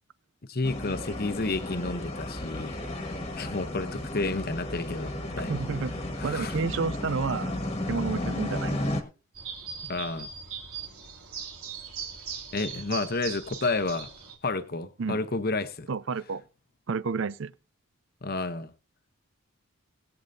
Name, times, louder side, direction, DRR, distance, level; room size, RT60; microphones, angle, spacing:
voice 1, 0.5-5.5 6.2-6.6 9.8-10.3 12.5-14.1 14.4-15.9 18.2-18.7, left 3 dB, 45° left, 0.9 m, -31 dB
sound 1, 0.6-9.0, left 1 dB, 25° left, 1.5 m, -33 dB
voice 2, 5.5-5.9 6.2-7.5 7.9-8.9 15.0-15.2 15.9-16.4 16.9-17.5, right 4 dB, 55° right, 0.5 m, -30 dB
sound 2, 9.3-14.3, right 6 dB, 80° right, 2.9 m, -39 dB
20.0 x 8.1 x 2.7 m
head